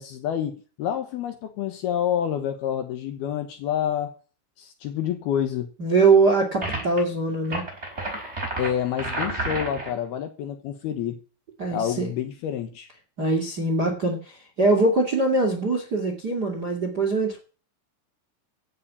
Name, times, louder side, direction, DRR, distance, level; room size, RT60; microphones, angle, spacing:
voice 1, 0.0-4.1 4.6-5.7 8.6-11.2 11.7-12.9, left 9 dB, 70° left, 2.7 m, -28 dB
voice 2, 5.8-7.6 11.6-12.1 13.2-17.4, right 3 dB, 35° right, 1.8 m, -22 dB
sound 1, 6.6-7.0 7.4-10.0, right 2 dB, 15° right, 5.0 m, -30 dB
16.0 x 7.6 x 8.6 m
omnidirectional pair, 5.5 m